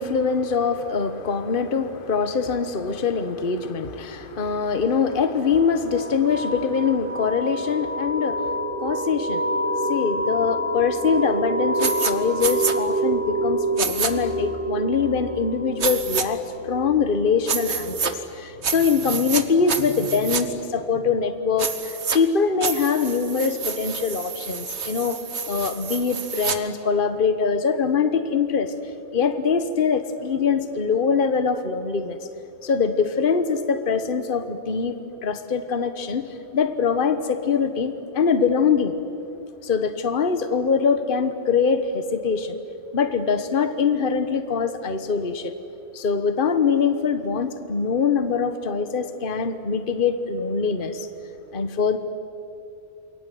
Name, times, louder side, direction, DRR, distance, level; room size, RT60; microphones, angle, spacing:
voice 1, 0.0-8.5 8.8-9.4 9.9-25.2 25.5-28.7 29.1-32.2 32.6-38.9 39.6-42.6 42.9-45.5 45.9-51.1 51.5-52.0, left 5 dB, 45° left, 10 dB, 1.4 m, -23 dB
sound 1, 5.1-19.5, right 1 dB, 10° right, 1.9 m, -28 dB
sound 2, 11.8-12.1 12.4-12.7 13.8-14.1 15.8-16.2 17.5-18.1 18.6-19.4 19.7-20.4 21.6-22.2 22.6-26.6, right 6 dB, 65° right, 1.6 m, -28 dB
28.0 x 22.0 x 9.3 m, 2.8 s
omnidirectional pair, 1.2 m